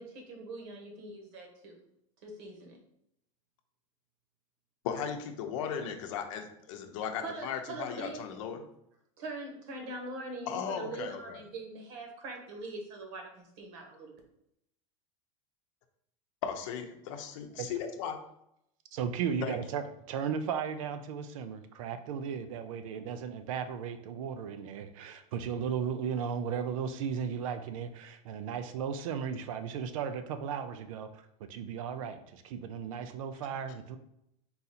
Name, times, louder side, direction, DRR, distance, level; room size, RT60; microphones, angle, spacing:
voice 1, 0.0-1.8 2.2-2.8 7.2-8.2 9.2-14.2, right 2 dB, 60° right, 1.3 m, -42 dB
voice 2, 4.8-8.6 10.5-11.4 16.4-18.2 19.4-19.6, left 7 dB, 70° left, 0.7 m, -36 dB
voice 3, 18.9-31.2 31.5-34.0, right 7 dB, 80° right, 0.5 m, -35 dB
3.9 x 2.8 x 4.1 m
supercardioid pair, 145°, 17 cm